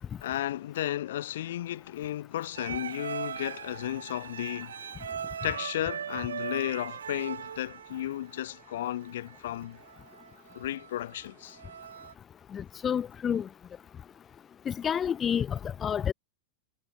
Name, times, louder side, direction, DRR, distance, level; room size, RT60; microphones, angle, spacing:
voice 1, 0.2-4.7 5.4-9.8 10.5-11.6, left 13 dB, 60° left, 5.3 m, -34 dB
sound 1, 2.6-12.1, right 8 dB, 65° right, 2.5 m, -40 dB
voice 2, 12.5-13.5 14.7-16.1, left 8 dB, 25° left, 4.5 m, -29 dB
figure-of-eight pair, 90°, 0 cm